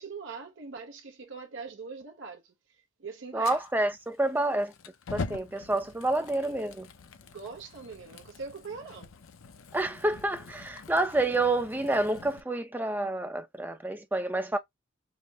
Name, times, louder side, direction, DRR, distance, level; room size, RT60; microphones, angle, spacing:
voice 1, 0.0-2.5 3.0-3.6 7.3-9.1, right 4 dB, 65° right, 0.6 m, -42 dB
voice 2, 3.3-4.7 5.1-6.9 9.7-14.6, right 2 dB, 10° right, 0.5 m, -28 dB
Fire, 3.4-12.4, left 4 dB, 85° left, 0.6 m, -44 dB
4.7 x 2.0 x 2.7 m
head